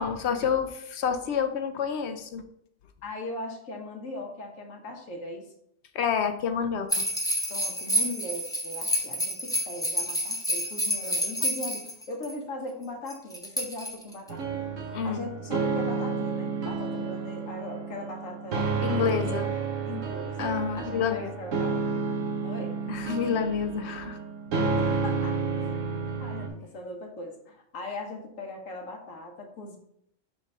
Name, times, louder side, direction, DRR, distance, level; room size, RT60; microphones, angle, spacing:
voice 1, 0.0-2.4 5.9-7.0 14.9-15.2 18.8-19.6 20.4-21.3 22.9-24.2, left 7 dB, 65° left, 8 dB, 0.9 m, -28 dB
voice 2, 3.0-5.5 7.5-14.7 15.0-18.8 19.8-21.7 22.4-22.8 24.8-25.7 26.2-29.8, left 2 dB, 85° left, 1 dB, 1.5 m, -39 dB
sound 1, 6.9-12.3 13.1-14.3, equal, 5° left, 0.7 m, -29 dB
sound 2, 14.3-26.5, right 4 dB, 80° right, 1.4 m, -30 dB
5.3 x 3.6 x 5.4 m, 0.71 s
omnidirectional pair, 1.3 m